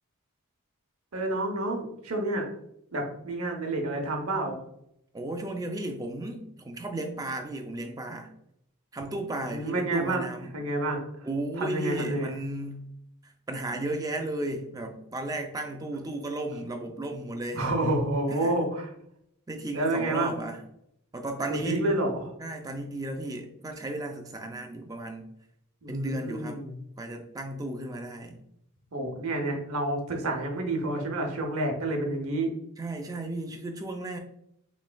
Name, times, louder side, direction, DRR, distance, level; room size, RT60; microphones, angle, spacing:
voice 1, 1.1-2.5 2.9-4.6 9.5-10.2 10.5-11.0 11.6-12.4 17.6-18.9 19.7-20.3 21.5-22.3 25.8-26.8 28.9-32.5, right 1 dB, 70° right, 3 dB, 0.8 m, -29 dB
voice 2, 5.1-8.3 8.9-10.5 11.2-12.9 13.2-17.7 18.3-18.5 19.5-20.6 21.1-21.9 22.4-25.3 25.9-26.6 27.0-28.4 32.8-34.2, right 2 dB, 15° right, 4 dB, 0.3 m, -34 dB
4.1 x 3.1 x 2.2 m, 0.75 s
head